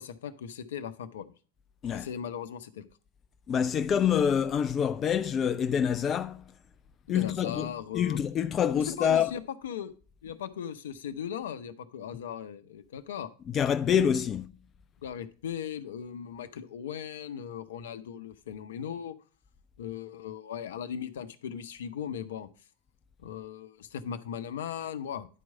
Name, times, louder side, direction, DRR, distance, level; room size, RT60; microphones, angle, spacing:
voice 1, 0.0-1.3 1.9-2.8 7.1-8.2 9.0-9.9 10.2-13.3 15.0-19.1 19.8-22.5 23.2-25.3, left 8 dB, 60° left, 0.7 m, -38 dB
voice 2, 3.5-6.4 7.1-9.3 13.5-14.5, left 8 dB, 25° left, 0.3 m, -26 dB
10.0 x 4.6 x 5.4 m
figure-of-eight pair, 90°, 0 cm